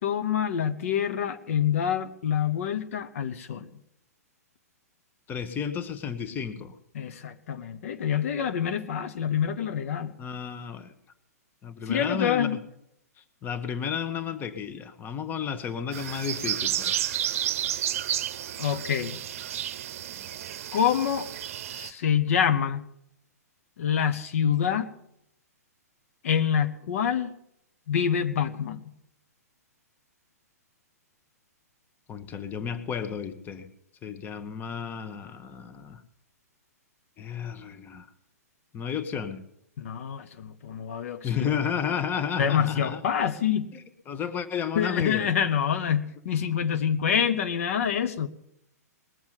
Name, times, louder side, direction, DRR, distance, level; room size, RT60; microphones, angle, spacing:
voice 1, 0.0-3.7 6.9-10.1 11.9-12.6 18.6-19.2 20.7-21.3 21.7-22.8 23.8-24.9 26.2-27.3 27.9-28.9 39.8-41.5 42.4-43.7 44.7-48.3, left 8 dB, 55° left, 9 dB, 1.1 m, -26 dB
voice 2, 5.3-6.7 10.2-10.9 11.6-12.6 13.2-17.0 32.1-33.7 34.0-36.0 37.2-38.1 38.7-39.4 41.2-43.0 43.7-45.3, left 7 dB, 20° left, 10 dB, 1.3 m, -32 dB
sound 1, 15.9-21.9, right 11 dB, 55° right, 0.8 m, -31 dB
20.5 x 7.2 x 9.7 m, 0.77 s
figure-of-eight pair, 115°, 9 cm